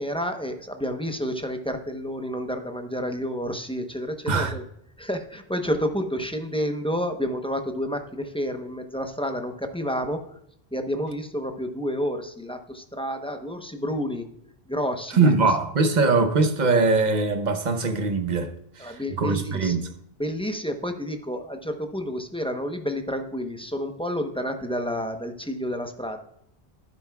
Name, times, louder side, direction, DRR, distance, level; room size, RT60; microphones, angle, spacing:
voice 1, 0.0-4.6 5.0-10.2 10.7-14.2 14.7-15.6 18.8-19.8 20.2-26.2, equal, 5° left, 0.8 m, -30 dB
voice 2, 15.1-19.9, right 3 dB, 45° right, 1.0 m, -22 dB
11.5 x 10.0 x 2.3 m
omnidirectional pair, 1.1 m